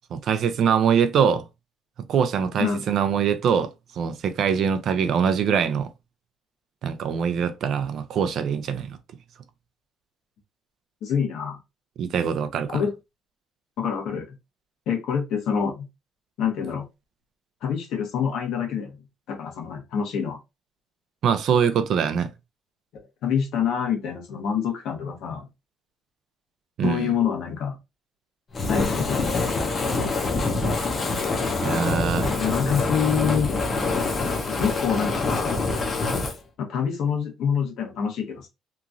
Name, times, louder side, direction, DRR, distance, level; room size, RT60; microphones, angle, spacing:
voice 1, 0.1-1.4 2.1-5.9 6.8-9.0 12.0-12.8 21.2-22.3 26.8-27.1 31.6-32.3, right 7 dB, 50° right, 0.4 m, -23 dB
voice 2, 11.0-11.6 12.7-12.9 13.8-14.3 14.9-15.9 16.4-16.9 17.6-19.0 19.3-20.4 22.9-25.5 26.8-27.8 28.6-29.4 32.2-33.5 34.5-35.6 36.6-38.5, left 7 dB, 70° left, 1.0 m, -26 dB
Fire, 28.5-36.4, left 3 dB, 30° left, 0.7 m, -25 dB
2.9 x 2.5 x 2.4 m
cardioid pair, 155°, 0 cm